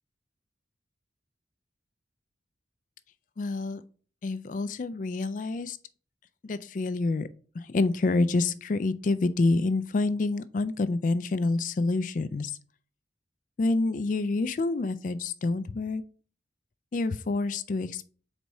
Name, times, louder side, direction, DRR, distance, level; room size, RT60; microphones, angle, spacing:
voice 1, 3.4-3.8 4.2-5.8 6.4-7.3 7.5-12.5 13.6-16.0 16.9-18.1, left 3 dB, 45° left, 13 dB, 0.3 m, -27 dB
4.7 x 4.0 x 5.4 m, 0.42 s
head